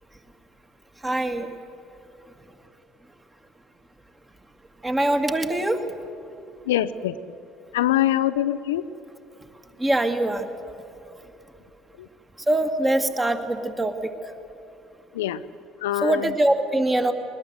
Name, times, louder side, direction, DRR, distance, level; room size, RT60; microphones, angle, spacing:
voice 1, 1.0-1.5 4.8-5.8 9.8-10.5 12.5-14.1 16.0-17.1, right 1 dB, 15° right, 6 dB, 2.1 m, -23 dB
voice 2, 6.7-7.2 7.7-8.9 12.0-12.1 15.1-15.4 15.8-16.3, left 13 dB, 75° left, 13 dB, 0.5 m, -24 dB
21.0 x 20.0 x 8.1 m, 2.8 s
figure-of-eight pair, 60°, 0 cm